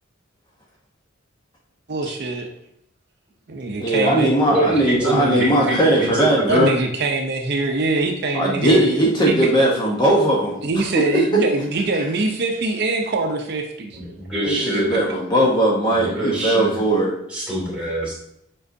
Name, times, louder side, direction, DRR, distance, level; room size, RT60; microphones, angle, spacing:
voice 1, 1.9-2.5 3.5-4.3 5.0-5.4 6.5-8.8 9.3-9.5 10.6-14.0 14.6-14.7, right 2 dB, 55° right, 2 dB, 0.6 m, -23 dB
voice 2, 3.8-6.8 8.3-11.4 14.4-17.1, right 1 dB, 25° left, -3 dB, 1.0 m, -19 dB
voice 3, 4.5-6.7 13.9-14.9 15.9-16.8 17.3-18.1, right 1 dB, 5° right, -7 dB, 2.6 m, -25 dB
7.5 x 5.3 x 2.7 m, 0.77 s
head